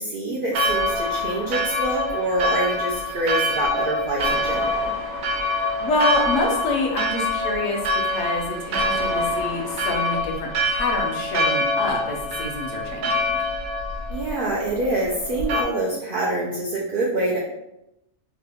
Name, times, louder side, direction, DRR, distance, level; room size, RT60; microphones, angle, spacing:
voice 1, 0.0-4.9 14.1-17.4, right 1 dB, 65° right, -4 dB, 0.5 m, -26 dB
Church bell, 0.5-15.6, left 1 dB, 80° right, 1.0 m, -25 dB
voice 2, 5.5-13.4, left 2 dB, 70° left, 1 dB, 1.0 m, -27 dB
2.9 x 2.3 x 3.4 m, 0.84 s
omnidirectional pair, 1.4 m